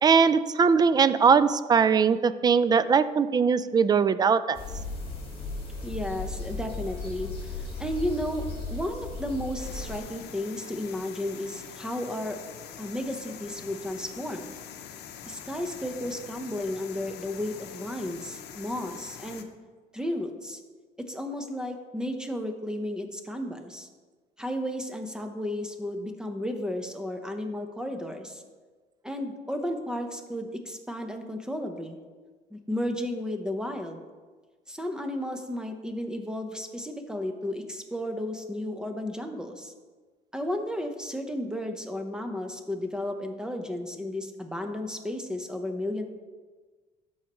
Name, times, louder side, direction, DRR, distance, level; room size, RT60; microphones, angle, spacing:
voice 1, 0.0-4.6, right 6 dB, 25° right, 14 dB, 0.3 m, -21 dB
sound 1, 4.5-10.0, left 3 dB, 30° left, 2.1 m, -36 dB
voice 2, 5.8-12.4 12.8-14.5 15.3-19.5 19.9-20.6 21.0-23.9 24.4-28.4 29.0-32.0 32.5-34.0 34.7-39.7 40.3-46.0, left 1 dB, 5° right, 5 dB, 0.8 m, -33 dB
sound 2, 9.6-19.4, left 9 dB, 80° left, 0.7 m, -44 dB
13.5 x 4.6 x 3.0 m, 1.4 s
cardioid pair, 110°, 17 cm